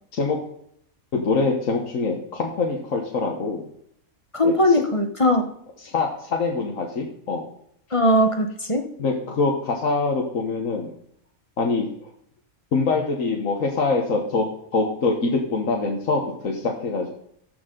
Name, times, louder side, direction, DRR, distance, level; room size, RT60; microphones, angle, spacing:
voice 1, 1.1-3.7 4.4-4.8 5.8-7.5 9.0-10.9 11.6-12.1 12.7-17.1, left 3 dB, 65° left, 0 dB, 1.6 m, -24 dB
voice 2, 4.3-5.5 7.9-8.9, left 1 dB, 25° left, 5 dB, 1.0 m, -19 dB
14.0 x 7.1 x 3.8 m, 0.70 s
omnidirectional pair, 1.5 m